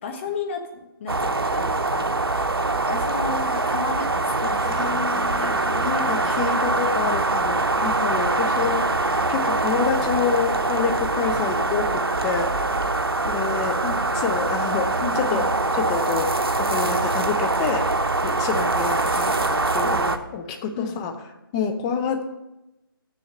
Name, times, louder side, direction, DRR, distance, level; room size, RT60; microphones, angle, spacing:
voice 1, 0.0-2.1 2.9-4.9 5.1-6.9 13.8-14.0 15.0-15.5 20.7-21.0, left 5 dB, 30° left, 4 dB, 1.1 m, -34 dB
sound 1, 1.1-20.2, right 2 dB, 85° right, 0.8 m, -23 dB
voice 2, 4.6-8.9 9.3-12.5 13.2-13.8 14.2-15.4 15.9-17.9 18.2-21.1 21.5-22.3, left 6 dB, 15° left, 5 dB, 0.6 m, -27 dB
7.0 x 6.5 x 7.6 m, 0.97 s
figure-of-eight pair, 150°, 12 cm